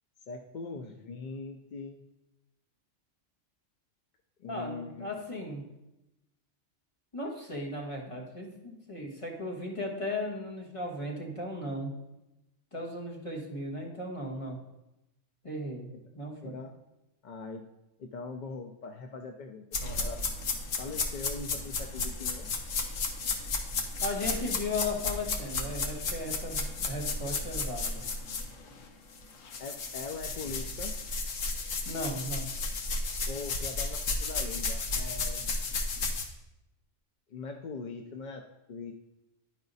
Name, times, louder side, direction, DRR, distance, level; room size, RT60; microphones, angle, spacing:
voice 1, 0.3-2.0 4.4-5.2 16.4-16.7 17.2-17.6 18.0-20.2 20.8-22.5 29.6-30.9 33.3-35.5 37.3-38.4 38.7-38.9, left 4 dB, 55° left, 4 dB, 0.5 m, -41 dB
voice 2, 4.4-5.6 7.1-11.9 12.7-14.6 15.4-16.6 24.0-28.0 31.8-32.5, left 1 dB, 25° left, -1 dB, 1.5 m, -36 dB
sound 1, 19.7-28.8 29.1-36.2, left 3 dB, 85° left, 1.3 m, -33 dB
10.5 x 4.8 x 4.0 m, 0.93 s
omnidirectional pair, 1.3 m